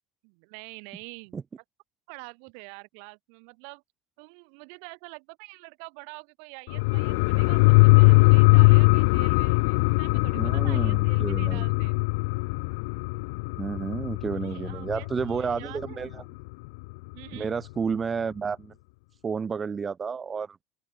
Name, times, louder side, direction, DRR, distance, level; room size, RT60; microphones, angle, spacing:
voice 1, 0.2-1.4 2.1-3.8 4.2-12.0 14.3-16.3 17.1-17.5, right 40 dB or more, 65° right, 6.7 m, -46 dB
sound 1, 6.7-15.8 16.1-16.2, left 27 dB, 80° left, 0.5 m, -21 dB
voice 2, 10.3-11.7 13.6-16.2 17.3-18.7 19.2-20.6, right 6 dB, 15° right, 1.9 m, -31 dB
open air
cardioid pair, 170°, 0 cm